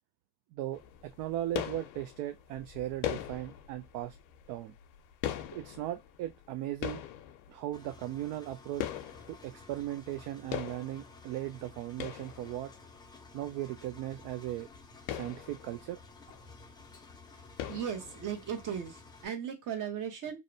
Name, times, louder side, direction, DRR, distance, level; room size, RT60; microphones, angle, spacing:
voice 1, 0.5-4.2 4.5-4.7 5.5-7.0 7.5-8.9 9.3-12.7 13.3-14.7 15.1-16.0, right 13 dB, 65° right, 0.5 m, -37 dB
sound 1, 0.7-10.2 10.5-13.0 13.5-13.6 13.9-14.0 14.2-14.4 14.8-16.6 16.9-17.2 17.6-18.6, left 11 dB, 80° left, 0.6 m, -41 dB
Engine, 7.7-19.3, left 3 dB, 10° left, 0.4 m, -53 dB
voice 2, 17.7-20.4, right 8 dB, 45° right, 1.0 m, -37 dB
2.6 x 2.1 x 2.6 m
supercardioid pair, 100°, 42 cm